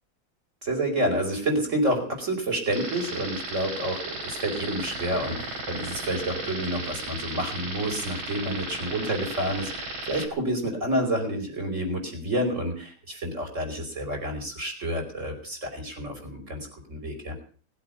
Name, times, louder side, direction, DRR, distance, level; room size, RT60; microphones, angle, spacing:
voice 1, 0.6-17.3, right 1 dB, 35° right, 3 dB, 5.4 m, -29 dB
sound 1, 2.7-10.3, right 2 dB, 80° right, 4.1 m, -35 dB
20.0 x 8.5 x 8.4 m, 0.44 s
omnidirectional pair, 2.2 m